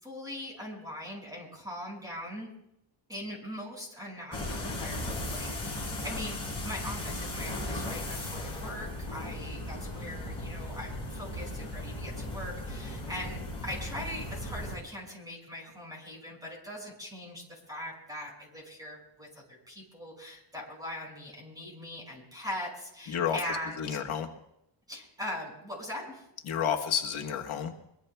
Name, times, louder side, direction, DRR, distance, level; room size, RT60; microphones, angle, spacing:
voice 1, 0.0-2.5 3.1-23.8 24.9-26.3, left 1 dB, 10° right, -1 dB, 5.8 m, -41 dB
sound 1, 4.3-14.8, left 1 dB, 10° left, 5.3 m, -37 dB
voice 2, 23.1-23.4 23.8-24.3 26.4-27.8, left 8 dB, 85° left, 3 dB, 1.4 m, -30 dB
23.5 x 23.0 x 2.3 m, 0.80 s
wide cardioid pair, 175°, 47 cm